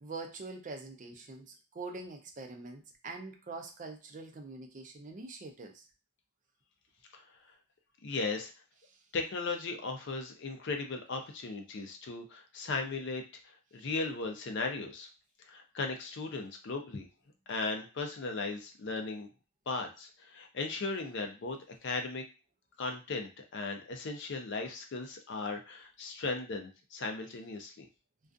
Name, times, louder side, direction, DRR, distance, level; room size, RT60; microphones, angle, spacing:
voice 1, 0.0-5.8, right 3 dB, 35° right, 4 dB, 0.4 m, -44 dB
voice 2, 8.0-8.5 9.1-13.2 13.7-15.1 15.5-17.1 17.5-19.3 19.7-22.2 22.8-27.9, left 3 dB, 55° left, 4 dB, 0.5 m, -37 dB
2.4 x 2.3 x 2.5 m, 0.31 s
head